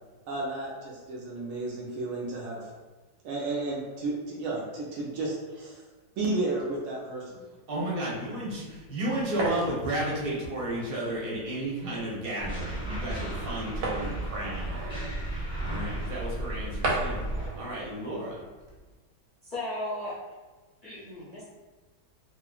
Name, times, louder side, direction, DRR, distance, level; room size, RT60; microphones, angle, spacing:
voice 1, 0.3-2.7 3.2-5.8 6.2-7.4, right 2 dB, 90° right, -4 dB, 0.7 m, -32 dB
voice 2, 7.7-14.8 15.6-17.3 17.6-18.4, right 1 dB, 45° right, -6 dB, 0.7 m, -33 dB
sound 1, 8.5-18.9, right 2 dB, 70° right, 1.0 m, -38 dB
sound 2, 12.4-17.5, right 1 dB, 5° right, 0.5 m, -34 dB
voice 3, 19.4-20.2 20.8-21.4, left 1 dB, 65° left, -11 dB, 0.5 m, -35 dB
2.9 x 2.4 x 2.3 m, 1.2 s
omnidirectional pair, 1.9 m